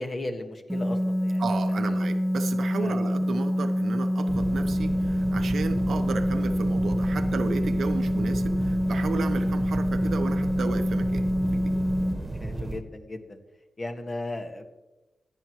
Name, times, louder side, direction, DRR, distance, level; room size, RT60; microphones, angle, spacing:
voice 1, 0.0-1.4 1.7-2.0 2.8-3.1 9.4-9.5 12.4-13.4 13.8-14.7, left 2 dB, 45° left, 5 dB, 1.6 m, -36 dB
sound 1, 0.7-12.1, equal, 5° right, 1.0 m, -26 dB
voice 2, 1.4-11.7, right 5 dB, 80° right, 8 dB, 0.8 m, -34 dB
sound 2, 4.3-12.8, right 2 dB, 30° right, 1.3 m, -34 dB
16.0 x 9.9 x 3.1 m, 1.1 s
cardioid pair, 60°, 0 cm